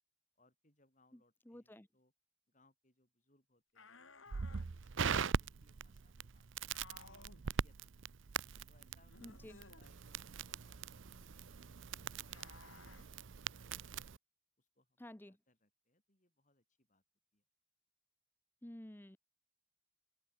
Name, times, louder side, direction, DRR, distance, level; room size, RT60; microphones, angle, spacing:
voice 1, 0.4-2.1 2.5-4.1 4.5-8.2 8.7-13.1 13.4-14.1 14.6-17.0 17.3-17.4, left 2 dB, 35° left, 7.3 m, -75 dB
voice 2, 1.5-1.9 9.2-9.6 15.0-15.4 18.6-19.2, left 1 dB, 10° left, 0.7 m, -52 dB
sound 1, 3.7-4.7 6.7-7.4 9.1-9.9 12.3-13.1, left 3 dB, 65° left, 3.8 m, -58 dB
Crackle, 4.3-14.2, right 6 dB, 60° right, 0.6 m, -41 dB
open air
head